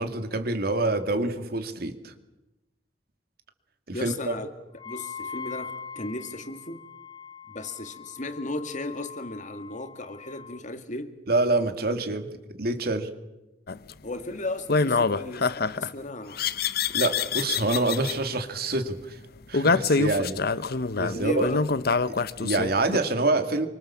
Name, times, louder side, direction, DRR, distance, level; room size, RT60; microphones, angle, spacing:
voice 1, 0.0-2.1 3.9-4.3 11.3-12.3 12.6-13.1 16.9-19.2 19.5-20.4 21.0-21.4 22.1-23.7, right 2 dB, 60° right, 2.4 m, -26 dB
voice 2, 3.9-4.5 4.8-6.8 7.5-11.2 14.0-16.4 21.1-21.6, left 2 dB, 45° left, 2.1 m, -35 dB
Wind instrument woodwind instrument, 4.8-10.6, left 6 dB, 25° left, 1.0 m, -42 dB
sound 1, 13.7-13.9 14.7-15.9 16.4-18.2 19.5-23.0, left 4 dB, 60° left, 0.8 m, -25 dB
27.0 x 25.0 x 7.3 m
head